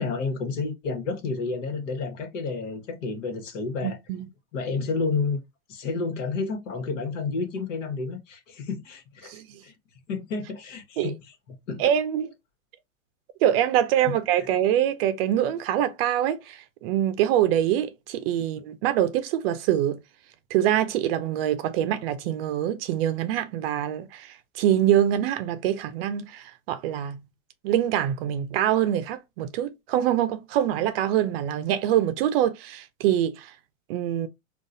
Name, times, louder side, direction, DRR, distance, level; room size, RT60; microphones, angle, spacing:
voice 1, 0.0-4.0 4.5-5.4 5.7-9.3 9.6-9.7 10.1-11.1 11.7-11.8 14.0-14.1, left 4 dB, 60° left, 1.4 m, -30 dB
voice 2, 3.8-4.3 9.3-9.6 11.0-11.1 11.8-12.3 13.4-20.0 20.5-27.2 27.6-33.5 33.9-34.3, right 11 dB, 45° right, 0.6 m, -24 dB
3.7 x 2.4 x 2.6 m
hypercardioid pair, 125°, 41 cm